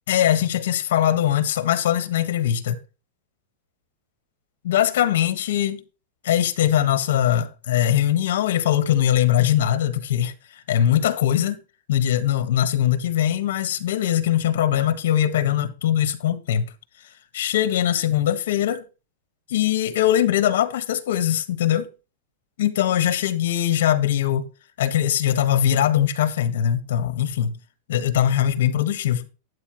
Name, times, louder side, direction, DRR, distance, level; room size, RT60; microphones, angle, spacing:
voice 1, 0.1-2.8 4.6-5.8 6.2-11.6 11.9-16.6 17.3-18.8 19.5-21.9 22.6-24.5 24.8-27.6 27.9-29.3, left 11 dB, 75° left, 1.5 m, -21 dB
12.5 x 8.6 x 3.1 m
supercardioid pair, 165°, 0 cm